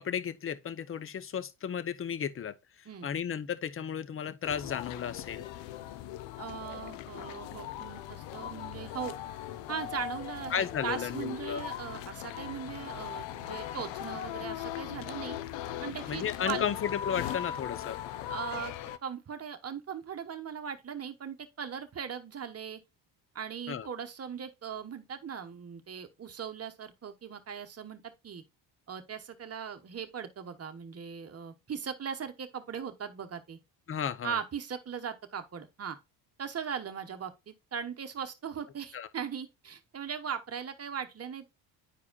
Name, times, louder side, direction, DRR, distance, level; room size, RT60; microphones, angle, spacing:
voice 1, 0.0-2.5 3.0-5.5 10.5-11.6 16.1-18.0 23.7-23.9 33.9-34.4 38.9-39.1, left 8 dB, 30° left, 0.6 m, -34 dB
sound 1, 4.4-19.0, left 11 dB, 65° left, 0.7 m, -39 dB
voice 2, 6.4-9.1 9.7-15.4 15.8-16.7 18.3-22.8 23.3-28.4 28.9-33.6 34.2-36.0 36.4-41.5, right 7 dB, 30° right, 1.1 m, -39 dB
9.9 x 4.7 x 2.3 m
supercardioid pair, 65°, 49 cm